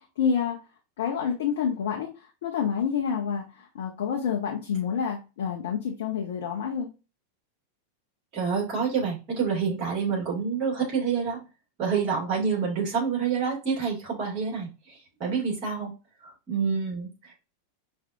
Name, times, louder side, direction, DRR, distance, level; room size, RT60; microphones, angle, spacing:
voice 1, 0.2-0.6 1.0-6.9, left 7 dB, 55° left, 0 dB, 0.7 m, -28 dB
voice 2, 8.3-11.4 11.8-15.9 16.2-17.4, right 6 dB, 40° right, -1 dB, 2.4 m, -28 dB
5.2 x 2.6 x 2.6 m, 0.30 s
figure-of-eight pair, 90°, 0 cm